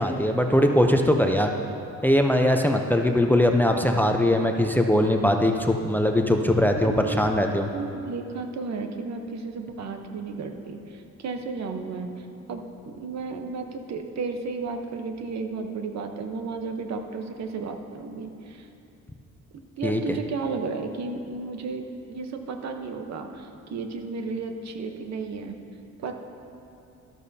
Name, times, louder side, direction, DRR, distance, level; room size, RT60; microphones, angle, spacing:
voice 1, 0.0-1.5 2.0-7.7 19.8-20.0, left 1 dB, 5° left, 4 dB, 0.6 m, -21 dB
voice 2, 6.8-7.3 7.7-18.7 19.5-25.6 26.0-26.2, right 4 dB, 60° right, 5 dB, 1.0 m, -33 dB
13.0 x 12.5 x 2.8 m, 2.7 s
cardioid pair, 90°, 30 cm